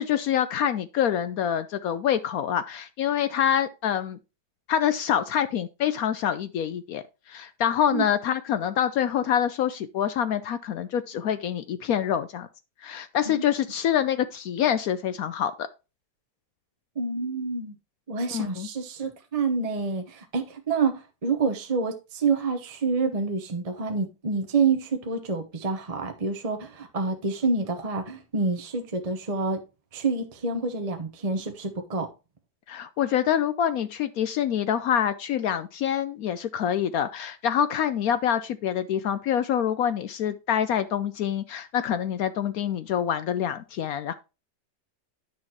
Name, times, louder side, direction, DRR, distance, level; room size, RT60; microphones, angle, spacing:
voice 1, 0.0-4.2 4.7-12.5 12.8-15.7 18.3-18.7 32.7-44.1, left 9 dB, 70° left, 0.9 m, -26 dB
voice 2, 17.0-17.7 18.1-29.6 29.9-32.1, right 4 dB, 30° right, 0.8 m, -27 dB
9.6 x 6.2 x 2.9 m
omnidirectional pair, 1.9 m